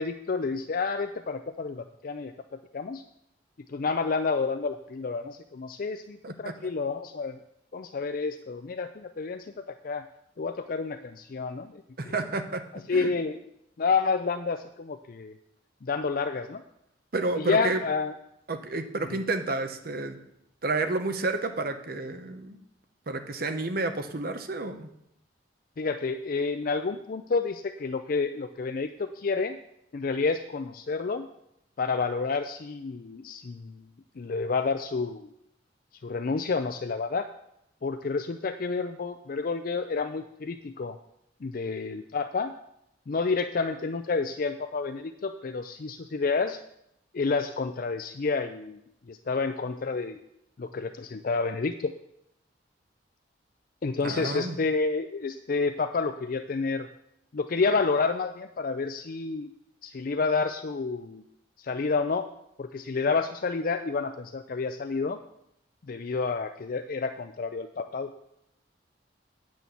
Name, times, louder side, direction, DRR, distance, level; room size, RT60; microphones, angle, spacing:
voice 1, 0.0-2.3 2.7-3.0 3.7-7.4 7.7-10.1 10.4-12.1 12.9-13.4 13.8-15.3 15.8-16.6 17.4-18.1 25.8-29.6 29.9-31.3 31.8-33.8 34.2-35.3 36.0-37.3 37.8-41.0 41.4-42.5 43.1-46.6 47.1-48.8 49.1-50.2 50.6-51.9 53.8-56.9 57.3-59.5 59.8-61.2 61.6-62.3 62.6-65.2 65.9-68.1, left 4 dB, 50° left, 8 dB, 0.4 m, -29 dB
voice 2, 6.2-6.6 12.0-12.6 12.9-13.1 17.1-17.8 18.5-20.2 20.6-22.6 23.1-24.9 54.0-54.6, right 3 dB, 55° right, 8 dB, 0.9 m, -30 dB
9.1 x 6.2 x 7.0 m, 0.78 s
head